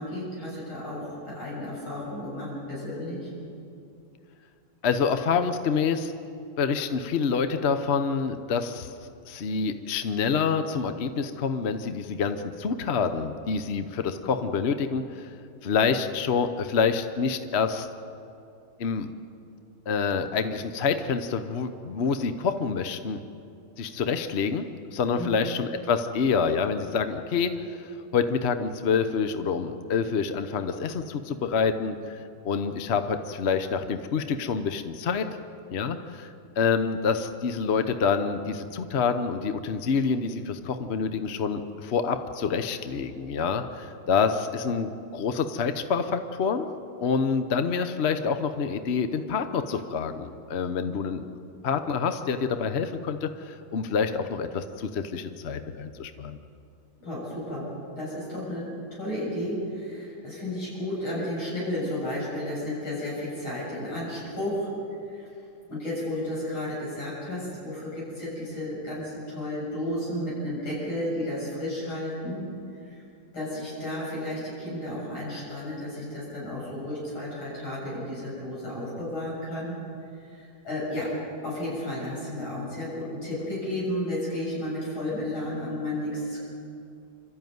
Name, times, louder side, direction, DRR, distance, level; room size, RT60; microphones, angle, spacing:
voice 1, 0.0-3.3 25.2-25.3 57.0-57.7 58.0-64.7 65.0-65.3 65.7-72.4 72.8-73.0 73.3-79.8 80.1-81.1 81.4-86.4, left 1 dB, 85° left, -7 dB, 7.9 m, -33 dB
voice 2, 4.8-6.1 6.6-8.9 9.3-15.3 15.6-17.9 18.8-19.1 19.9-23.2 23.8-35.3 35.7-36.3 36.6-46.7 47.0-51.2 51.6-56.4, left 5 dB, 55° left, 9 dB, 0.7 m, -27 dB
26.5 x 13.5 x 9.4 m, 2.6 s
omnidirectional pair, 2.2 m